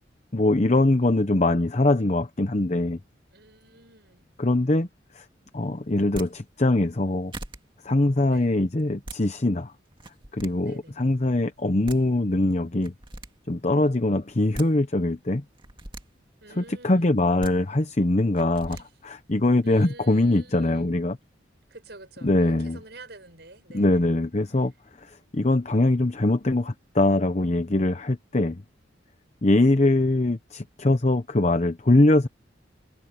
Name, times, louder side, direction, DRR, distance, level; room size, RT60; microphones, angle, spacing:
voice 1, 0.3-3.0 4.4-4.9 5.1-5.2 5.5-7.3 7.8-9.7 10.3-12.9 13.5-15.4 16.6-18.8 19.0-21.2 22.2-22.8 23.7-24.7 25.1-28.6 29.4-32.3, left 2 dB, 35° left, 0.9 m, -22 dB
voice 2, 3.3-4.2 8.2-8.5 10.6-11.2 16.4-17.2 18.6-18.9 19.6-20.9 21.7-24.1, right 2 dB, 60° right, 7.9 m, -48 dB
sound 1, 6.0-6.3 7.0-7.1 7.3-7.6 8.8-9.2 9.9-10.5 11.6-11.7 11.8-12.0 12.8-13.3 14.3-14.7 15.6-16.0 17.2-17.5 18.4-18.8, right 2 dB, 25° right, 2.3 m, -39 dB
head